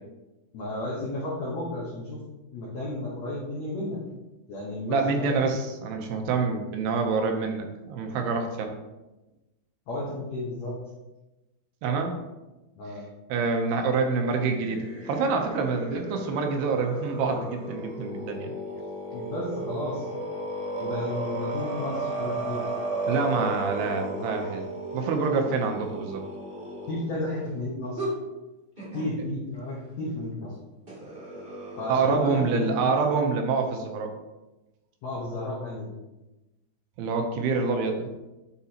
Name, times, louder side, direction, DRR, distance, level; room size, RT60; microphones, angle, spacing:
voice 1, 0.5-2.2 2.5-4.0 4.5-5.4 9.9-10.7 12.8-13.0 19.1-20.1 20.8-22.6 26.9-28.1 28.9-30.5 31.8-32.9 35.0-35.9, left 1 dB, 75° left, -6 dB, 1.6 m, -32 dB
voice 2, 4.9-8.7 11.8-12.2 13.3-18.5 23.1-24.7 24.9-26.2 31.9-34.1 37.0-38.1, right 4 dB, 80° right, 4 dB, 2.7 m, -26 dB
sound 1, 14.2-27.0 28.0-28.1 28.8-29.1 30.9-32.7, right 2 dB, 20° right, 1.4 m, -34 dB
9.7 x 4.7 x 2.8 m, 1.0 s
omnidirectional pair, 4.8 m